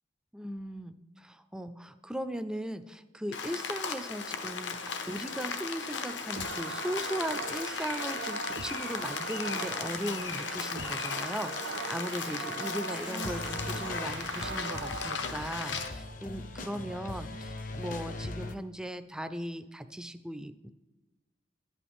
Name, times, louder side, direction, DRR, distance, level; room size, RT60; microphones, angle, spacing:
voice 1, 0.3-4.8 5.1-11.5 11.9-20.7, equal, 5° right, 11 dB, 0.3 m, -38 dB
Rain, 3.3-15.9, left 5 dB, 75° left, 0.9 m, -37 dB
sound 1, 6.4-15.2, right 5 dB, 70° right, 0.5 m, -40 dB
sound 2, 8.2-8.4 8.9-9.4 9.7-11.1 11.4-18.6, left 2 dB, 45° left, 0.6 m, -41 dB
11.5 x 8.5 x 3.5 m, 1.2 s
head